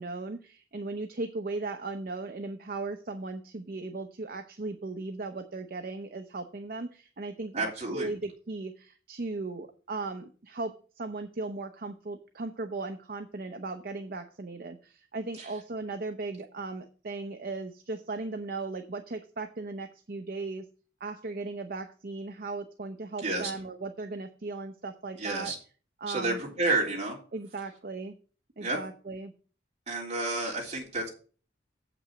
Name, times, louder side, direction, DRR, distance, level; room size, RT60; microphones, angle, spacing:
voice 1, 0.0-20.7 21.0-25.5 26.0-26.4 27.3-28.1 28.6-29.3, right 3 dB, 55° right, 6 dB, 0.7 m, -37 dB
voice 2, 7.5-8.1 15.4-15.5 23.2-23.5 25.2-25.5 26.1-27.2 28.6-28.8 29.9-31.1, right 2 dB, 35° right, -2 dB, 3.4 m, -30 dB
7.8 x 6.0 x 6.1 m, 0.40 s
head